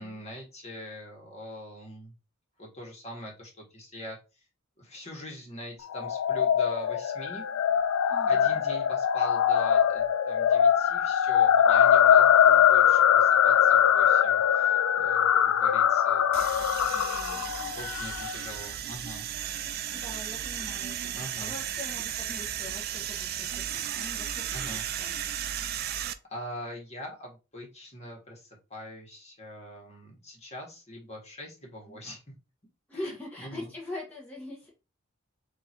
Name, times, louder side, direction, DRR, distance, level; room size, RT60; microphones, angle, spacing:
voice 1, 0.0-2.1 2.6-4.2 4.8-7.4 8.3-16.3 17.7-19.3 21.1-21.5 24.5-24.9 26.1-32.2 32.9-33.1 33.4-33.7, equal, 30° left, 0 dB, 1.4 m, -43 dB
sound 1, 5.9-18.3, left 9 dB, 80° left, 0.3 m, -22 dB
voice 2, 8.1-8.6 16.9-17.5 19.9-21.1 21.4-23.5 23.7-25.1 31.9-32.0 32.9-34.7, left 2 dB, 10° left, -4 dB, 1.0 m, -43 dB
sound 2, 16.3-26.1, right 10 dB, 50° right, 0.4 m, -35 dB
3.7 x 2.5 x 4.3 m, 0.29 s
head